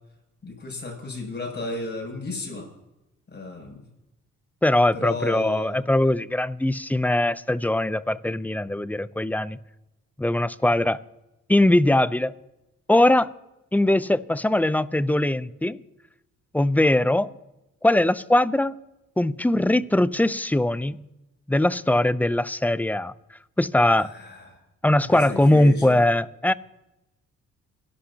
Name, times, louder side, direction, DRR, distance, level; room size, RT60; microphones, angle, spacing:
voice 1, 0.4-2.7 3.3-3.8 4.9-5.7 24.0-24.6 25.1-26.0, left 2 dB, 35° left, 7.4 m, -34 dB
voice 2, 4.6-9.6 10.2-11.0 11.5-12.3 12.9-13.3 13.7-15.8 16.5-17.3 17.8-18.8 19.2-21.0 21.5-23.1 23.6-24.1 24.8-26.5, left 1 dB, 5° left, 0.5 m, -21 dB
29.5 x 12.0 x 2.9 m
cardioid pair, 90°, 30 cm